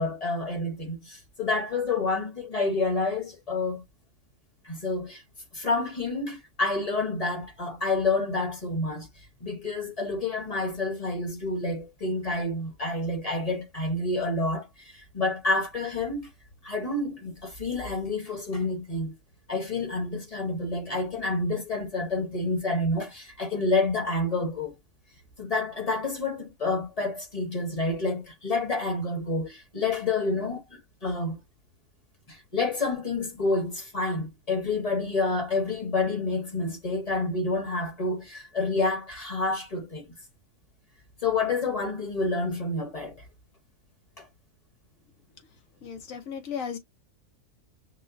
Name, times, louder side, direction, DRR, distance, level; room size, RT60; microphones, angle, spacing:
voice 1, 0.0-3.8 4.6-5.2 5.5-9.1 9.4-16.3 16.6-19.1 19.5-24.7 25.4-31.4 32.3-40.1 41.2-43.2 44.2-44.3, left 2 dB, 30° left, 1.1 m, -29 dB
voice 2, 45.8-46.8, left 7 dB, 75° left, 1.3 m, -35 dB
6.0 x 2.1 x 2.6 m
omnidirectional pair, 1.4 m